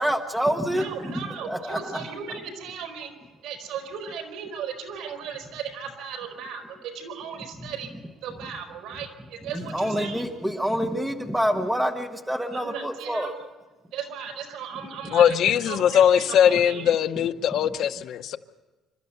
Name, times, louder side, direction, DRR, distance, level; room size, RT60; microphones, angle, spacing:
voice 1, 0.0-2.0 9.5-13.3 17.2-17.3 17.6-17.8, equal, 5° right, 6 dB, 1.0 m, -27 dB
voice 2, 0.7-10.2 12.5-13.3 13.9-16.9, right 7 dB, 85° right, 4 dB, 4.7 m, -37 dB
voice 3, 15.1-18.4, left 9 dB, 50° left, 10 dB, 0.7 m, -20 dB
27.0 x 13.0 x 8.0 m, 1.2 s
cardioid pair, 175°, 0 cm